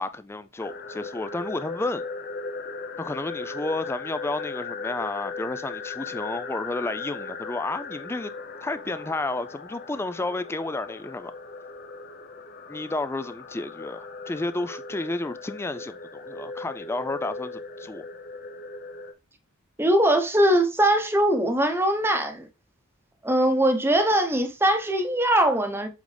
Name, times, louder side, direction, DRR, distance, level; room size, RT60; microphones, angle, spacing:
voice 1, 0.0-2.0 3.0-8.3 8.6-11.3 12.7-18.0, left 2 dB, 10° left, 0.3 m, -31 dB
sound 1, 0.6-19.1, left 4 dB, 45° left, 0.8 m, -38 dB
voice 2, 19.8-22.5 23.2-25.9, right 1 dB, 10° right, 0.8 m, -21 dB
8.1 x 3.9 x 3.3 m
head